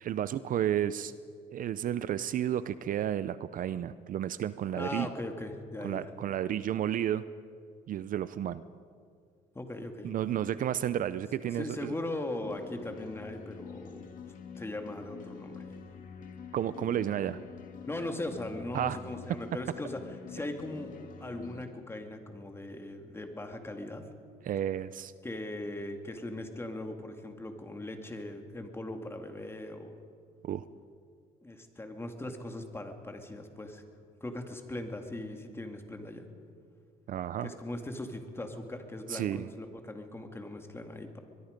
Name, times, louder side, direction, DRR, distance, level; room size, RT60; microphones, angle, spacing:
voice 1, 0.0-1.1 1.5-5.1 5.8-7.3 7.9-8.6 10.0-11.9 16.5-17.4 18.7-19.0 24.4-25.1 30.4-30.6 37.1-37.5 39.1-39.5, right 11 dB, 55° right, 15 dB, 0.6 m, -32 dB
voice 2, 4.8-6.1 9.5-10.1 11.5-14.1 14.6-15.7 17.9-24.1 25.2-29.9 31.4-33.8 34.2-36.3 37.4-41.2, left 1 dB, 15° left, 5 dB, 2.3 m, -39 dB
sound 1, 12.4-21.7, left 6 dB, 50° left, 2.3 m, -46 dB
23.0 x 22.0 x 5.3 m, 2.2 s
cardioid pair, 110°, 17 cm